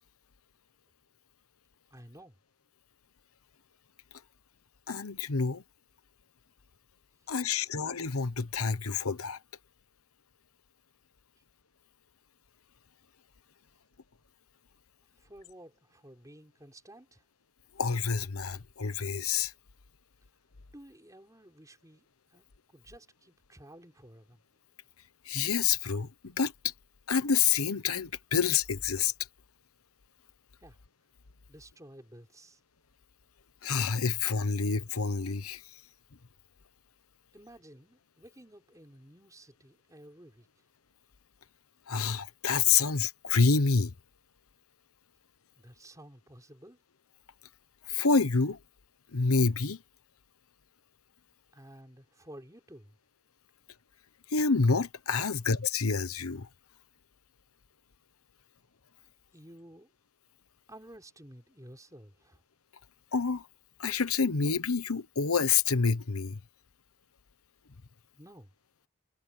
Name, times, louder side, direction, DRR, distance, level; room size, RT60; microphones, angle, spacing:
voice 1, 1.9-2.4 7.2-7.6 15.2-17.2 20.7-24.4 30.6-30.8 31.5-32.6 37.3-40.6 45.5-46.8 51.5-53.0 59.3-59.9 60.7-62.4 68.1-68.5, right 1 dB, 15° right, 5.0 m, -53 dB
voice 2, 4.9-5.6 7.3-9.4 17.8-19.5 25.3-26.7 27.1-29.1 33.6-35.6 41.9-43.9 47.9-48.6 49.1-49.8 54.3-56.5 63.1-63.4 63.8-66.4, left 5 dB, 90° left, 1.1 m, -28 dB
head